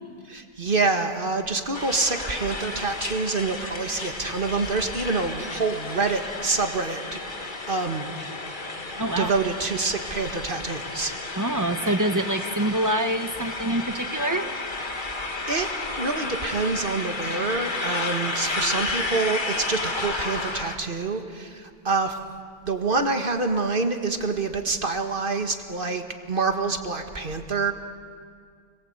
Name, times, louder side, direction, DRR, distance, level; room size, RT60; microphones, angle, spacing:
voice 1, 0.3-8.1 9.2-11.1 14.9-15.7 16.0-22.2 22.6-27.7, right 3 dB, 60° right, 5 dB, 1.9 m, -27 dB
sound 1, 1.7-20.8, left 3 dB, 50° left, 1.9 m, -32 dB
voice 2, 9.0-9.3 11.4-14.5, right 1 dB, 20° right, 7 dB, 1.2 m, -25 dB
30.0 x 21.5 x 8.1 m, 2.1 s
omnidirectional pair, 1.0 m